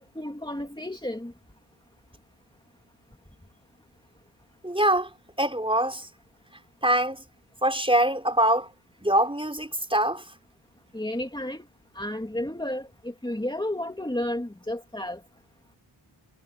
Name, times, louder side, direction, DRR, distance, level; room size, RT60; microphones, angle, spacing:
voice 1, 0.0-1.3 10.9-11.6 11.9-15.2, left 1 dB, 10° left, 2.8 m, -32 dB
voice 2, 4.6-5.1 5.4-6.1 6.8-7.2 7.6-8.7 9.0-10.2, right 1 dB, 10° right, 4.6 m, -23 dB
wide cardioid pair, 90°, 47 cm